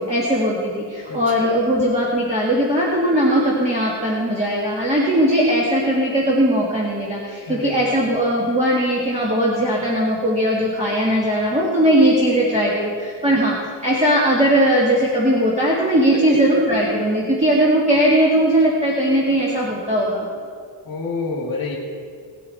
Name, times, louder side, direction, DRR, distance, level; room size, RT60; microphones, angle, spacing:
voice 1, 0.0-20.3, equal, 15° right, -4 dB, 1.5 m, -19 dB
voice 2, 1.1-1.6 7.5-7.7 16.1-16.4 20.8-21.8, left 3 dB, 45° left, -2 dB, 2.0 m, -28 dB
18.5 x 10.5 x 4.2 m, 2.3 s
wide cardioid pair, 180°, 47 cm